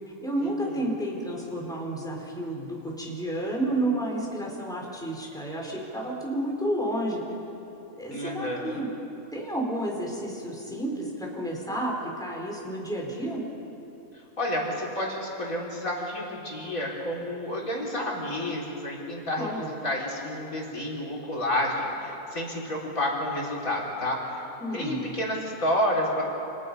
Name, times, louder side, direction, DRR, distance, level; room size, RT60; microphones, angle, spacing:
voice 1, 0.2-7.2 8.0-8.9 9.3-13.4 19.4-19.7 24.6-25.0, right 1 dB, ahead, -2 dB, 4.3 m, -31 dB
voice 2, 8.1-8.8 14.4-24.4 24.7-26.2, left 1 dB, 65° left, -3 dB, 4.3 m, -30 dB
29.5 x 27.5 x 5.5 m, 2.9 s
omnidirectional pair, 1.5 m